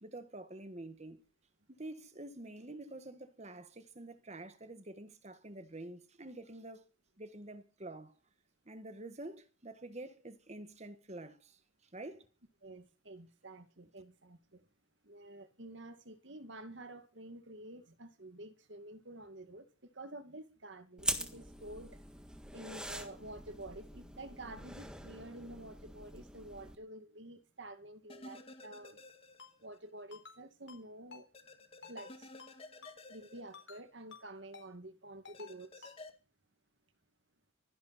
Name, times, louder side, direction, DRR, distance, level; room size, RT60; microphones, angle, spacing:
voice 1, 0.0-1.3 1.8-6.8 7.2-8.2 8.6-11.6 11.9-12.3, right 2 dB, 35° right, 1.5 m, -48 dB
voice 2, 12.6-14.6 15.0-21.9 22.5-29.0 29.6-31.3 31.8-32.1 33.1-35.9, right 1 dB, 65° right, 2.1 m, -49 dB
sound 1, 21.0-26.7, right 1 dB, 5° right, 1.6 m, -43 dB
sound 2, 28.1-29.8 30.1-30.2 31.3-34.2 35.3-36.1, left 2 dB, 30° left, 2.1 m, -53 dB
Ringtone, 29.4-29.5 30.1-30.4 30.7-30.8 31.1-31.2 31.8-32.1 32.4-32.5 32.8-33.0 33.5-33.8 34.1-34.2 34.5-34.7 35.2-35.5 35.8-36.0, left 5 dB, 65° left, 4.2 m, -52 dB
24.5 x 11.5 x 4.2 m
head